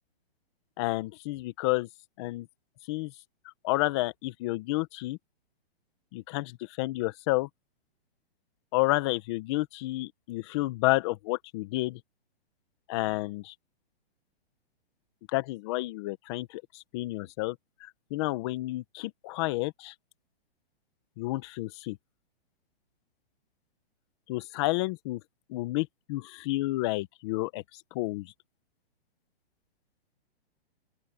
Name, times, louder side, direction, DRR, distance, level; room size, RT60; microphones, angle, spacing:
voice 1, 0.8-1.9 2.2-2.5 2.9-3.1 3.6-5.2 6.1-7.5 8.7-12.0 12.9-13.5 15.3-19.9 21.2-22.0 24.3-25.2 25.5-28.3, left 20 dB, 25° left, 1.2 m, -30 dB
open air
hypercardioid pair, 165°, 31 cm